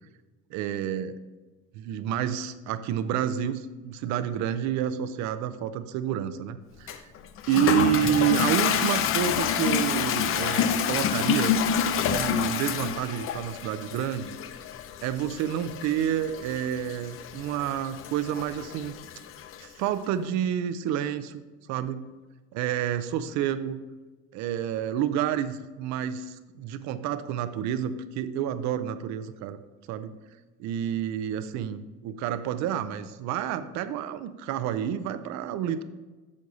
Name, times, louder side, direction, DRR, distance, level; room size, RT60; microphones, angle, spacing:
voice 1, 0.5-1.1 1.7-7.1 7.5-11.6 12.0-14.4 15.0-18.9 19.6-21.4 21.7-22.1 22.5-23.8 24.3-29.6 29.9-30.1 30.6-35.8, right 10 dB, 70° right, 12 dB, 0.7 m, -29 dB
Toilet flush, 6.9-19.7, left 8 dB, 45° left, 0.6 m, -28 dB
8.7 x 6.5 x 4.1 m, 1.2 s
cardioid pair, 125°, 29 cm